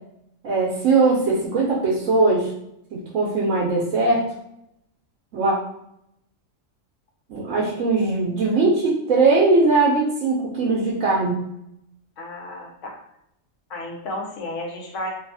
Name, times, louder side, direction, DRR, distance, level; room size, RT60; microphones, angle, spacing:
voice 1, 0.4-2.5 2.9-4.3 5.3-5.5 7.3-11.4, right 3 dB, 80° right, -4 dB, 1.0 m, -20 dB
voice 2, 12.2-13.0 13.7-15.1, left 1 dB, 75° left, 0 dB, 1.0 m, -32 dB
2.7 x 2.3 x 2.5 m, 0.78 s
omnidirectional pair, 1.3 m